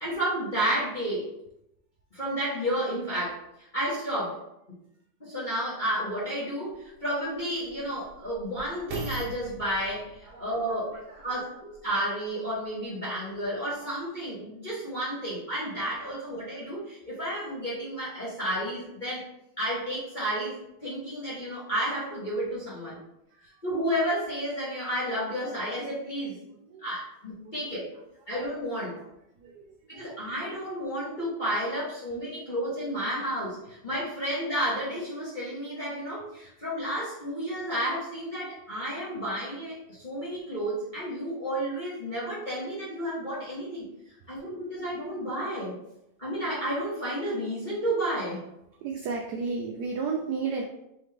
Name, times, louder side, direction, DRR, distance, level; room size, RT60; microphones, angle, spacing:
voice 1, 0.0-1.3 2.1-3.4 3.7-4.4 5.2-10.9 11.2-19.3 19.6-23.0 23.6-26.4 26.8-27.8 28.3-29.0 29.9-43.8 44.3-45.8 46.2-48.5, right 1 dB, 35° left, -9 dB, 0.7 m, -31 dB
sound 1, 5.9-6.0 6.7-12.0 12.6-12.7, right 3 dB, 70° right, 1.4 m, -43 dB
voice 2, 10.2-11.4 26.7-26.9 27.4-27.6 29.0-29.1 29.4-29.7 29.9-30.1 48.8-50.6, right 5 dB, 85° right, 1 dB, 0.8 m, -34 dB
4.0 x 3.2 x 3.2 m, 0.84 s
omnidirectional pair, 2.3 m